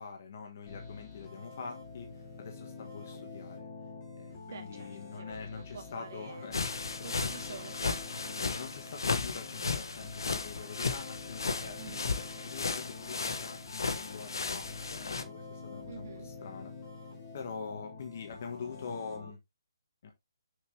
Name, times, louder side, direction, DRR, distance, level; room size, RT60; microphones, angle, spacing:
voice 1, 0.0-2.1 2.4-3.7 4.2-6.6 8.4-11.8 12.4-16.7 17.3-19.4 20.0-20.1, left 5 dB, 35° left, 1.5 m, -44 dB
sound 1, 0.7-19.3, left 4 dB, 15° left, 2.1 m, -47 dB
voice 2, 4.5-6.5 7.0-8.3 11.8-12.1 15.9-16.3, right 6 dB, 40° right, 1.8 m, -48 dB
sound 2, 6.5-15.2, left 4 dB, 80° left, 1.2 m, -35 dB
6.7 x 6.2 x 3.3 m
hypercardioid pair, 180°, 2 cm